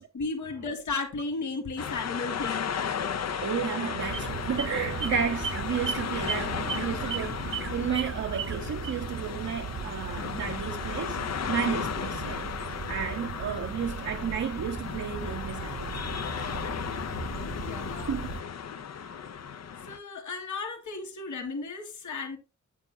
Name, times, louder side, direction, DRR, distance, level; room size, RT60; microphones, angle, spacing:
voice 1, 0.1-2.7 17.6-18.2 19.9-22.4, left 3 dB, 80° left, 1.8 m, -34 dB
sound 1, 1.8-20.0, left 7 dB, 60° left, 0.7 m, -35 dB
voice 2, 3.3-11.2 11.5-12.5 12.9-16.5 18.1-18.3, right 7 dB, 70° right, 1.0 m, -32 dB
sound 2, 4.0-18.4, right 7 dB, 45° right, 0.5 m, -37 dB
9.5 x 8.1 x 2.3 m
cardioid pair, 80°, 29 cm